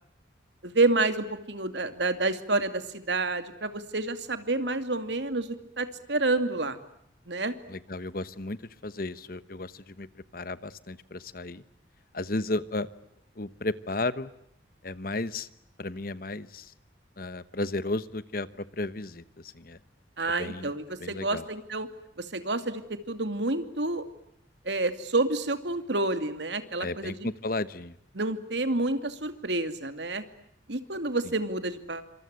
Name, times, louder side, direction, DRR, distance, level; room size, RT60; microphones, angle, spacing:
voice 1, 0.6-6.8 7.3-7.5 20.2-21.9 22.2-24.0 24.6-27.1 28.1-30.2 30.7-32.0, right 2 dB, 70° right, 9 dB, 2.6 m, -29 dB
voice 2, 7.7-11.6 12.1-12.9 13.3-14.3 14.8-15.5 15.8-16.7 17.2-19.8 20.4-20.7 21.0-21.5 26.8-28.0 31.2-31.3, left 2 dB, 50° left, 15 dB, 1.1 m, -34 dB
28.0 x 26.0 x 8.2 m, 0.76 s
head